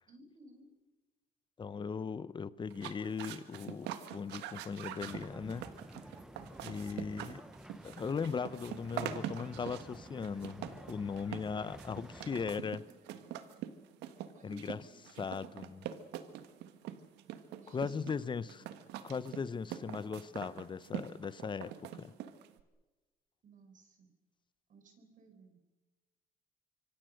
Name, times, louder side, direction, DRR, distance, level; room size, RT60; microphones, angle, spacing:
voice 1, 0.1-0.7 12.1-12.2 12.7-13.3 14.3-15.1 17.5-18.6 23.4-24.1 24.7-25.7, right 1 dB, 50° right, 4.9 m, -58 dB
voice 2, 1.6-5.7 6.6-7.4 7.8-12.8 14.4-14.8 15.2-15.9 17.7-18.6 19.0-22.1, left 5 dB, 30° left, 0.9 m, -38 dB
sound 1, 2.7-22.6, right 11 dB, 90° right, 1.6 m, -44 dB
sound 2, 5.0-12.6, right 1 dB, 5° right, 0.8 m, -52 dB
26.0 x 24.0 x 6.6 m
cardioid pair, 110°, 17 cm